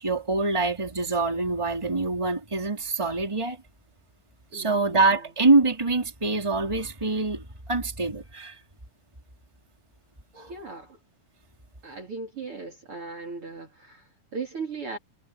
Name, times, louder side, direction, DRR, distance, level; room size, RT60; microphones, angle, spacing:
voice 1, 0.0-3.6 4.5-8.6 10.3-10.5, right 3 dB, 10° right, 3.5 m, -25 dB
voice 2, 4.5-5.2 10.3-11.0 11.8-15.0, right 4 dB, 40° right, 3.4 m, -38 dB
omnidirectional pair, 4.0 m